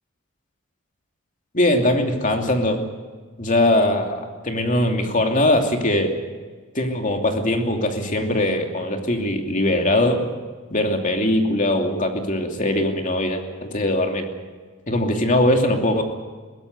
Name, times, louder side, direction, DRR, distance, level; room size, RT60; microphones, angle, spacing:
voice 1, 1.5-2.8 3.4-6.1 6.7-10.2 10.7-14.3 14.9-16.0, left 1 dB, 40° left, 3 dB, 2.8 m, -21 dB
22.0 x 16.5 x 8.3 m, 1.4 s
head